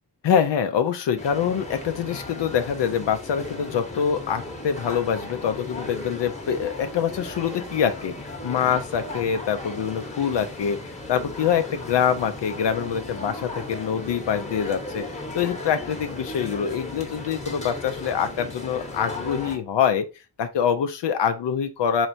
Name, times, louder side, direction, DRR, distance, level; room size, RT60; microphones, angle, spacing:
voice 1, 0.2-20.1 20.4-22.1, left 8 dB, 85° left, 0.5 m, -25 dB
sound 1, 1.2-19.6, left 2 dB, 15° left, 0.9 m, -36 dB
4.4 x 3.2 x 2.6 m
wide cardioid pair, 90°, 41 cm